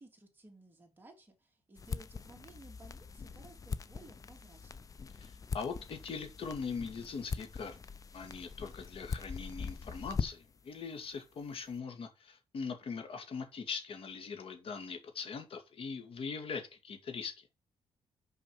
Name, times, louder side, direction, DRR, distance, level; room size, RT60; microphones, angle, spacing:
voice 1, 0.0-4.9, right 2 dB, 20° right, 2.8 m, -57 dB
sound 1, 1.8-10.6, left 5 dB, 30° left, 0.6 m, -42 dB
voice 2, 5.2-7.8 8.1-17.5, left 5 dB, 55° left, 1.9 m, -41 dB
6.3 x 5.2 x 5.7 m
cardioid pair, 120°, 11 cm